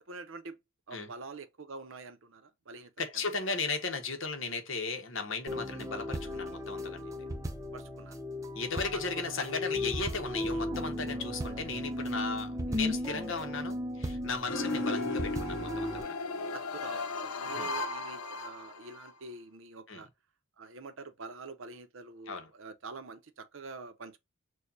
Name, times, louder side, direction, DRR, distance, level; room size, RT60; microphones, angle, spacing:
voice 1, 0.1-0.6 0.9-3.1 7.7-8.2 9.2-9.5 16.5-20.1 20.6-24.2, right 3 dB, 65° right, 0.7 m, -46 dB
voice 2, 3.0-7.2 8.5-16.2 17.4-17.8 19.9-20.1 22.3-22.5, left 4 dB, 60° left, 1.0 m, -36 dB
sound 1, 5.5-16.0, left 1 dB, 15° right, 0.5 m, -36 dB
sound 2, 14.5-19.1, left 3 dB, 85° left, 0.7 m, -36 dB
6.4 x 2.3 x 2.6 m
head